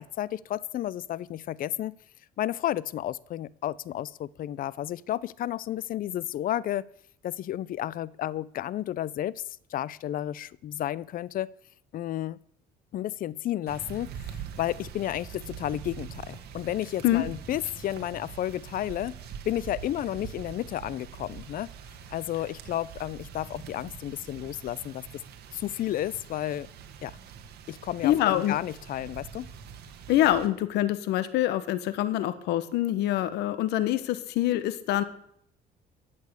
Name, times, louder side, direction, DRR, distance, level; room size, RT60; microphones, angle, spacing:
voice 1, 0.0-2.0 2.4-6.9 7.2-9.4 9.7-11.5 11.9-12.4 12.9-19.2 19.5-21.7 22.1-25.0 25.5-26.7 27.0-27.2 27.7-29.5, left 12 dB, 55° left, 0.6 m, -32 dB
sound 1, 13.7-30.5, right 7 dB, 70° right, 2.0 m, -44 dB
voice 2, 28.0-28.5 30.1-35.0, left 13 dB, 85° left, 1.3 m, -25 dB
13.0 x 8.6 x 8.3 m
cardioid pair, 110°, 17 cm